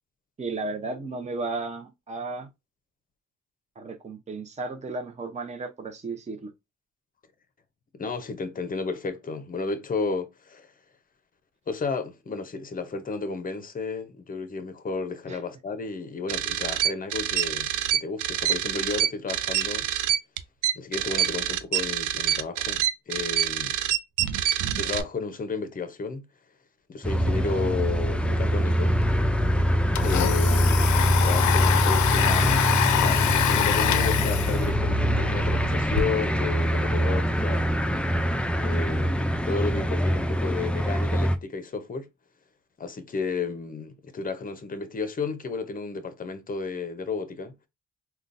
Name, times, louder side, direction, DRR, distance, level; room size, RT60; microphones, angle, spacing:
voice 1, 0.4-2.5 3.8-6.5 15.3-15.4, right 3 dB, 25° right, 0.7 m, -34 dB
voice 2, 7.9-10.7 11.7-19.9 20.7-23.7 24.7-26.3 26.9-29.0 30.0-37.7 38.6-42.1 42.8-47.6, left 4 dB, 30° left, 0.7 m, -33 dB
sound 1, 16.3-25.0, right 11 dB, 80° right, 0.5 m, -26 dB
sound 2, 27.0-41.4, equal, 5° left, 0.3 m, -24 dB
Domestic sounds home sounds, 29.0-29.1 29.4-36.0, left 11 dB, 70° left, 0.5 m, -26 dB
3.7 x 2.3 x 2.5 m
cardioid pair, 90°, 30 cm